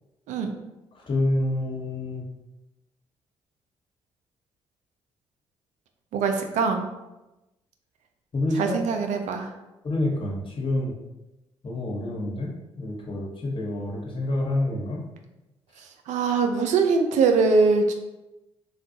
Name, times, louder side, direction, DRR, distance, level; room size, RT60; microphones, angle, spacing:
voice 1, 1.1-2.2 8.3-8.8 9.8-10.9 11.6-15.0, left 1 dB, 40° left, -2 dB, 0.9 m, -27 dB
voice 2, 6.1-6.9 8.5-9.5 16.1-17.9, right 4 dB, 65° right, 5 dB, 0.4 m, -22 dB
3.3 x 2.3 x 2.7 m, 0.99 s
hypercardioid pair, 45°, 13 cm